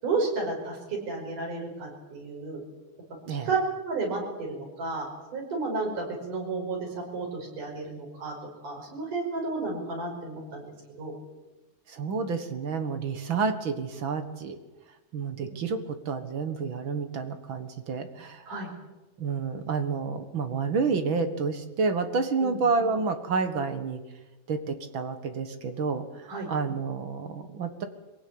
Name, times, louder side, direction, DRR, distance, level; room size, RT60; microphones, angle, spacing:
voice 1, 0.0-2.6 3.5-3.6 3.8-8.3 8.6-11.1 18.5-18.7 22.4-22.6 26.3-26.5, right 3 dB, 85° right, 0 dB, 7.0 m, -32 dB
voice 2, 11.9-14.6 15.1-18.4 19.2-24.0 24.5-27.8, right 4 dB, 50° right, 8 dB, 1.9 m, -29 dB
23.5 x 17.0 x 8.8 m, 1.1 s
omnidirectional pair, 3.6 m